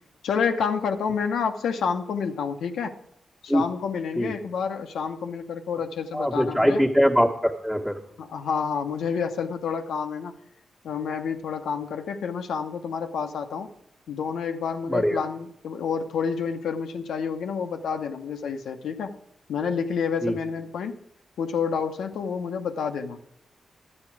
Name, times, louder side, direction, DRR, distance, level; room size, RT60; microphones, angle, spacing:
voice 1, 0.2-2.9 3.4-6.8 8.2-10.3 10.8-13.7 14.1-19.2 19.5-21.0 21.4-23.2, left 6 dB, 85° left, 6 dB, 0.8 m, -29 dB
voice 2, 6.1-8.0 14.8-15.2 20.2-20.4, equal, ahead, -5 dB, 1.4 m, -22 dB
11.0 x 8.9 x 4.8 m, 0.79 s
cardioid pair, 55°, 0 cm